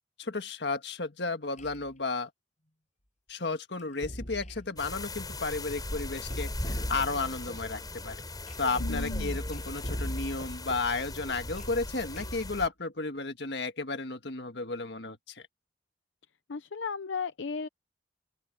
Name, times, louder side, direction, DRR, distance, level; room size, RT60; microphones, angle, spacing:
voice 1, 0.2-2.3 3.3-8.2 8.6-15.4, left 3 dB, 65° left, 1.7 m, -33 dB
sound 1, 1.6-1.9 3.8-4.7 6.2-7.5 8.5-10.7 11.4-12.5, equal, 40° left, 7.1 m, -38 dB
sound 2, 4.8-12.7, left 2 dB, 20° left, 6.2 m, -39 dB
voice 2, 8.8-9.4 16.5-17.7, left 5 dB, 85° left, 0.7 m, -35 dB
open air
head